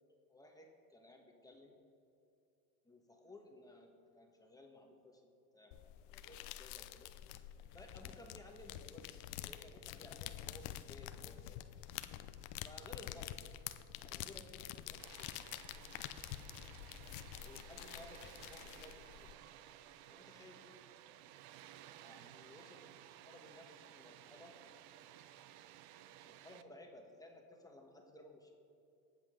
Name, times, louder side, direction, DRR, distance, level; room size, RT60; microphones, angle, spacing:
voice 1, 0.3-1.8 2.8-7.1 7.7-11.7 12.6-13.3 14.0-15.4 17.4-19.4 20.1-20.7 22.0-22.8 23.2-24.5 26.2-28.6, left 1 dB, 10° left, 2 dB, 1.5 m, -58 dB
sound 1, 5.7-19.3, left 13 dB, 55° left, 0.7 m, -48 dB
Water, 15.0-26.6, right 12 dB, 55° right, 0.7 m, -57 dB
19.5 x 7.8 x 3.8 m, 2.6 s
supercardioid pair, 115°, 47 cm